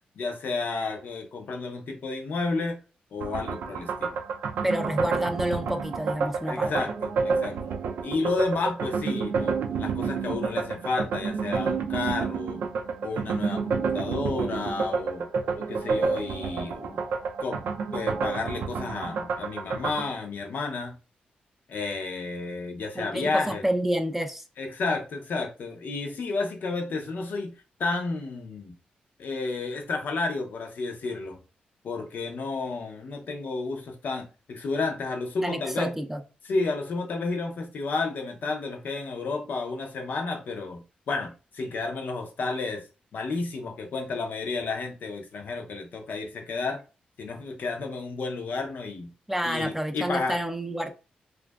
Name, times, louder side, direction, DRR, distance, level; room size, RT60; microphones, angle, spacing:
voice 1, 0.2-2.8 3.1-4.2 6.4-7.7 8.0-12.6 13.0-15.3 15.5-17.0 17.4-17.6 17.9-20.9 21.7-23.6 24.6-27.5 27.8-28.7 29.2-31.4 31.8-35.9 36.4-42.8 43.1-46.8 47.2-49.1 49.4-50.4, left 3 dB, 70° left, 0.6 m, -31 dB
sound 1, 3.2-20.1, right 5 dB, 75° right, 0.3 m, -29 dB
voice 2, 4.6-6.7 23.0-24.4 35.4-36.2 49.3-50.9, right 1 dB, 5° right, 0.5 m, -29 dB
2.5 x 2.3 x 2.2 m
cardioid pair, 60°, 3 cm